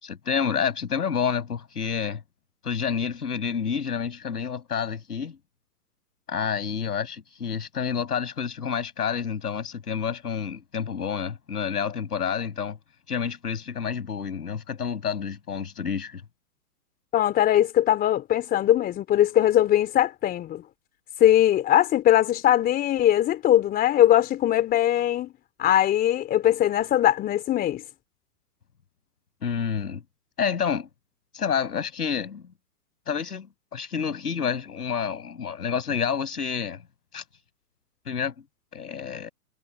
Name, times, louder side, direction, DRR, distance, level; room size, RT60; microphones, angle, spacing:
voice 1, 0.0-2.2 2.6-5.4 6.3-12.8 13.1-16.2 29.4-30.0 30.4-30.9 31.3-32.5 33.1-33.5 33.7-36.8 37.1-37.2 38.1-38.3 38.7-39.3, left 7 dB, 80° left, 7.4 m, -29 dB
voice 2, 17.1-20.6 21.2-25.3 25.6-27.8, left 12 dB, 20° left, 3.4 m, -21 dB
hypercardioid pair, 135°, 46 cm